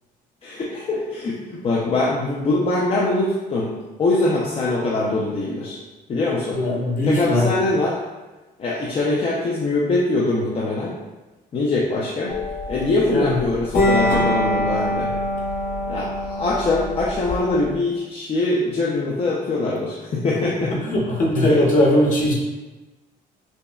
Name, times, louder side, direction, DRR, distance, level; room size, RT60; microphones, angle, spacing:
voice 1, 0.4-3.7 4.0-5.8 6.1-6.6 7.0-8.0 8.6-11.0 11.5-12.3 12.7-15.1 15.9-20.7 21.5-21.6, left 2 dB, 35° left, -5 dB, 0.5 m, -23 dB
voice 2, 6.5-7.5 13.1-13.3 20.8-22.3, left 1 dB, 50° left, -3 dB, 1.0 m, -19 dB
sound 1, 12.3-17.8, left 1 dB, 75° left, 1.1 m, -24 dB
5.4 x 2.1 x 2.2 m, 1.2 s
cardioid pair, 110°, 17 cm